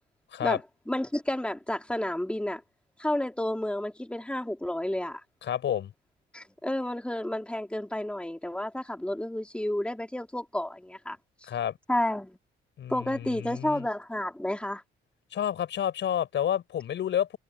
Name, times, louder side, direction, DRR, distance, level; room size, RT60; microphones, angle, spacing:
voice 1, 0.9-2.6 3.0-5.2 6.3-11.2 11.9-12.4 12.9-14.8, left 1 dB, 5° left, 3.7 m, -31 dB
voice 2, 5.4-5.9 11.5-11.7 12.8-13.8 15.3-17.4, left 10 dB, 65° left, 6.2 m, -30 dB
cardioid pair, 90°, 20 cm